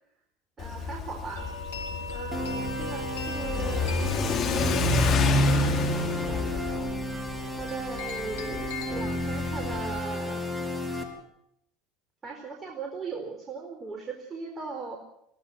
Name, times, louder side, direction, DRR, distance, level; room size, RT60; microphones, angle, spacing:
Car / Accelerating revving vroom, 0.6-10.0, left 2 dB, 50° left, 3.4 m, -28 dB
voice 1, 0.6-1.5 2.1-4.1 5.4-6.9 7.6-10.4 12.2-15.0, right 4 dB, 30° right, 2 dB, 4.3 m, -39 dB
sound 1, 1.3-11.2, left 2 dB, 80° left, 3.0 m, -40 dB
sound 2, 2.3-11.0, left 1 dB, 5° right, 4.5 m, -33 dB
23.0 x 17.0 x 7.6 m, 0.76 s
hypercardioid pair, 70°, 0 cm